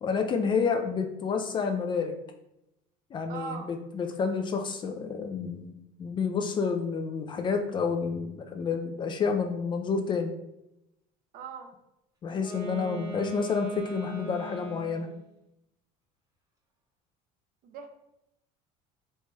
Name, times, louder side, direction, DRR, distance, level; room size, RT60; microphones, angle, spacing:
voice 1, 0.0-2.1 3.1-10.3 12.2-15.1, left 5 dB, 30° left, 4 dB, 0.3 m, -29 dB
voice 2, 3.3-3.7 11.3-11.7 17.6-17.9, right 6 dB, 55° right, 5 dB, 0.6 m, -39 dB
Wind instrument woodwind instrument, 12.3-15.2, right 3 dB, 25° right, 1.3 m, -39 dB
4.2 x 3.0 x 2.2 m, 0.86 s
cardioid pair, 125°, 17 cm